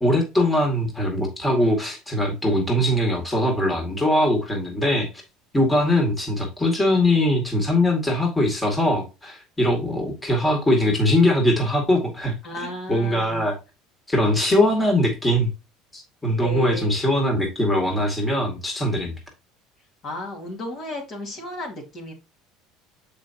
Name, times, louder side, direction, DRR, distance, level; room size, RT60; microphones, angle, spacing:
voice 1, 0.0-5.1 5.5-13.6 14.1-15.5 15.9-19.1, left 1 dB, 10° left, 2.2 m, -21 dB
voice 2, 12.4-13.4 16.4-17.0 20.0-22.1, left 2 dB, 45° left, 2.5 m, -33 dB
6.8 x 5.2 x 2.9 m
supercardioid pair, 90°, 0 cm